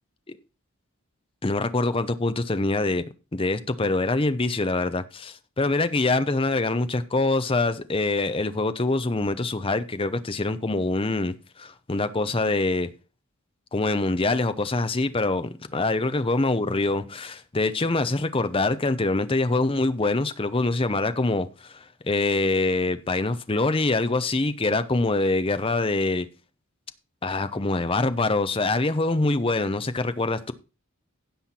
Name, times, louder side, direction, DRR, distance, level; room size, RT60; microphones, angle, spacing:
voice 1, 1.4-3.0 3.3-12.9 13.7-26.3 27.2-30.5, left 2 dB, 25° left, 0.7 m, -24 dB
16.0 x 5.8 x 4.4 m
head